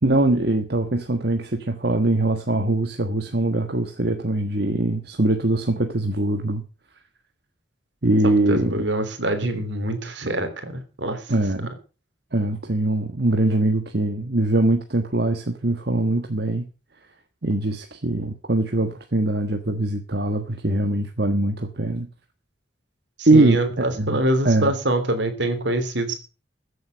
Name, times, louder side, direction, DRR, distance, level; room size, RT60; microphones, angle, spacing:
voice 1, 0.0-6.6 8.0-8.8 11.3-11.7 12.3-16.7 17.4-22.1 23.3-24.7, right 2 dB, 60° right, 1.4 m, -22 dB
voice 2, 8.2-11.2 23.2-26.1, right 1 dB, 75° right, 3.3 m, -25 dB
15.0 x 8.1 x 6.6 m
head